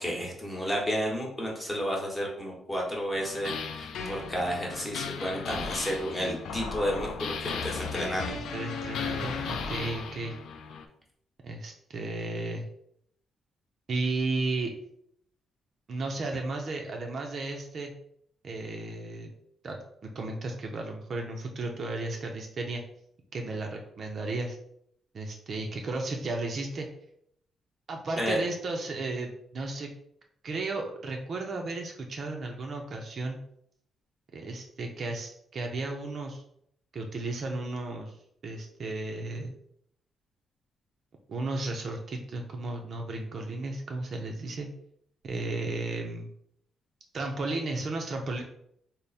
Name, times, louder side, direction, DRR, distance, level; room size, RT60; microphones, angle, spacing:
voice 1, 0.0-8.3 28.2-28.4, equal, 15° left, -2 dB, 0.9 m, -31 dB
sound 1, 3.1-10.9, left 5 dB, 80° left, 0.4 m, -36 dB
voice 2, 8.3-10.4 11.4-12.7 13.9-14.7 15.9-17.9 18.4-19.3 19.6-22.8 23.3-24.6 25.1-26.9 27.9-29.9 30.4-33.4 34.3-36.4 36.9-38.1 38.4-39.6 41.3-44.7 45.2-46.3 47.1-48.4, right 2 dB, 45° right, 2 dB, 0.5 m, -34 dB
3.4 x 2.1 x 4.0 m, 0.71 s
cardioid pair, 130°, 0 cm